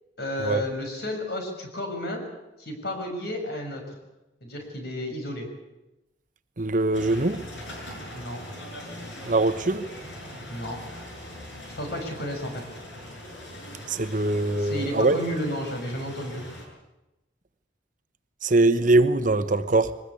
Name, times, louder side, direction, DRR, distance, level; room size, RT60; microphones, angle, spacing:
voice 1, 0.2-2.2 2.6-4.0 4.4-5.5 8.1-8.4 10.5-10.8 11.7-12.8 14.6-16.4, left 1 dB, 60° left, 6.3 m, -32 dB
voice 2, 6.6-7.4 9.3-9.8 13.9-15.2 18.4-19.9, right 2 dB, 45° right, 1.1 m, -22 dB
sound 1, 6.9-16.7, left 1 dB, 90° left, 7.0 m, -41 dB
23.0 x 20.0 x 8.5 m
head